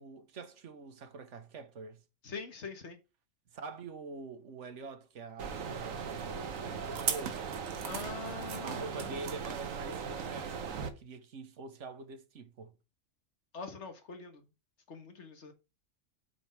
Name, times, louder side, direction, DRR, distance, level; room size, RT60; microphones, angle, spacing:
voice 1, 0.0-2.0 3.5-7.4 8.6-12.7, right 4 dB, 65° right, 1.4 m, -45 dB
voice 2, 2.2-3.0 7.8-9.2 13.5-14.4 14.9-15.5, left 4 dB, 60° left, 1.8 m, -43 dB
sound 1, 5.4-10.9, right 6 dB, 85° right, 1.4 m, -37 dB
8.2 x 5.3 x 4.6 m
omnidirectional pair, 1.3 m